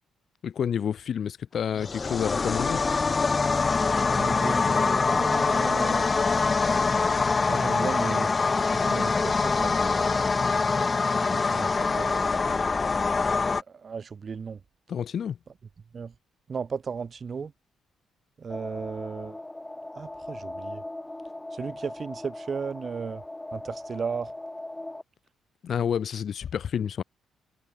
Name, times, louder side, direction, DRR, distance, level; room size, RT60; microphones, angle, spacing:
voice 1, 0.4-2.8 14.9-15.4 25.6-27.0, left 8 dB, 55° left, 4.9 m, -29 dB
sound 1, 1.7-13.6, left 4 dB, 30° left, 2.1 m, -24 dB
voice 2, 4.2-6.1 7.5-8.3 8.7-10.3 11.2-12.5 13.5-14.6 15.9-16.1 16.5-17.5 18.4-19.4 20.0-20.8 21.5-23.2 23.5-24.3, right 6 dB, 40° right, 2.0 m, -35 dB
sound 2, 18.5-25.0, left 1 dB, 10° left, 4.8 m, -39 dB
cardioid pair, 90°, 0 cm